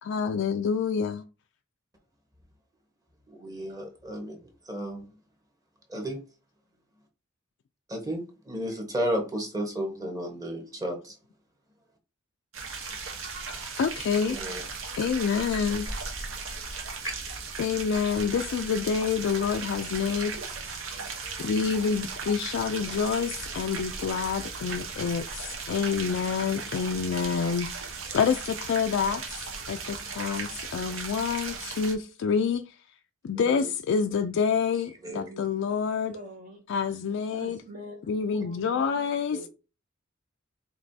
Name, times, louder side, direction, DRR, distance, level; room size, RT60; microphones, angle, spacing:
voice 1, 0.0-1.2 13.8-14.4 15.0-15.9 17.6-20.3 21.4-32.8 33.2-36.2 36.7-37.6 38.1-39.5, left 6 dB, 65° left, 0.3 m, -28 dB
voice 2, 3.3-5.1 5.9-6.2 7.9-11.1 14.2-14.6 17.0-17.1 33.3-33.7 35.0-35.3 39.3-39.5, equal, 20° right, 1.1 m, -33 dB
sound 1, 12.5-31.9, right 4 dB, 70° right, 1.0 m, -37 dB
voice 3, 35.1-35.5 36.1-36.6 37.3-38.0 38.3-39.1, right 1 dB, 40° right, 0.7 m, -44 dB
5.2 x 3.0 x 2.7 m
head